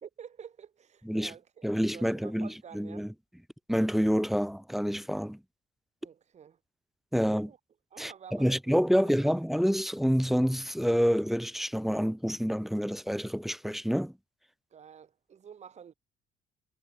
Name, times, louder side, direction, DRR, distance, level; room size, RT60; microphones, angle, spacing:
voice 1, 0.0-3.1 6.0-6.6 7.2-7.6 7.9-8.6 9.0-9.3 14.7-15.9, right 8 dB, 40° right, 2.8 m, -49 dB
voice 2, 1.6-3.1 3.7-5.4 7.1-7.5 8.0-14.1, equal, ahead, 0.4 m, -28 dB
cardioid pair, 110°, 17 cm